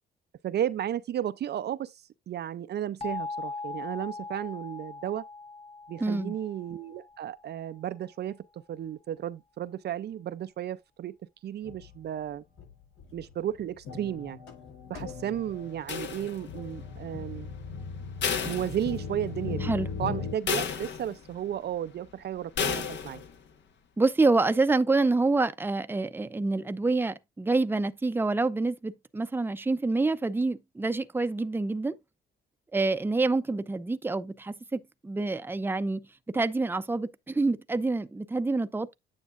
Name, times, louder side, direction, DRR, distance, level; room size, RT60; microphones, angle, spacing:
voice 1, 0.4-1.9 2.3-5.3 5.9-11.2 11.4-12.4 13.1-14.4 14.9-17.5 18.4-19.7 20.0-23.2, right 10 dB, 55° right, 0.5 m, -33 dB
sound 1, 3.0-7.7, left 3 dB, 30° left, 1.5 m, -40 dB
voice 2, 6.0-6.4 19.6-19.9 24.0-32.0 32.7-38.9, right 3 dB, 10° right, 0.6 m, -27 dB
sound 2, 11.6-12.0 12.6-12.7 13.0-20.3, left 5 dB, 80° left, 5.6 m, -38 dB
sound 3, 15.9-16.7 18.2-19.3 19.7-19.8 20.5-21.4 22.6-23.3, left 6 dB, 65° left, 1.6 m, -32 dB
9.4 x 7.2 x 2.5 m
cardioid pair, 90°, 20 cm